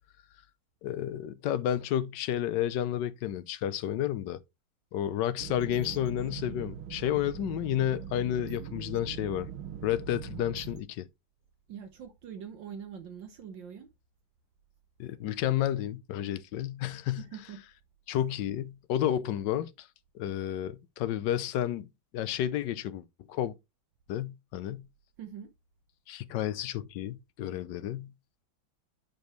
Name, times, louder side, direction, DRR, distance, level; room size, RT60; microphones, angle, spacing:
voice 1, 0.8-4.4 4.9-9.5 9.8-11.1 15.0-17.2 18.1-19.9 20.1-21.9 22.1-23.5 24.1-24.9 26.1-28.1, left 11 dB, 70° left, 1.2 m, -31 dB
sound 1, 5.4-10.8, right 9 dB, 85° right, 1.6 m, -41 dB
voice 2, 11.7-13.9 17.2-17.6 25.2-25.5, right 8 dB, 65° right, 1.7 m, -43 dB
10.5 x 4.6 x 3.1 m
omnidirectional pair, 2.2 m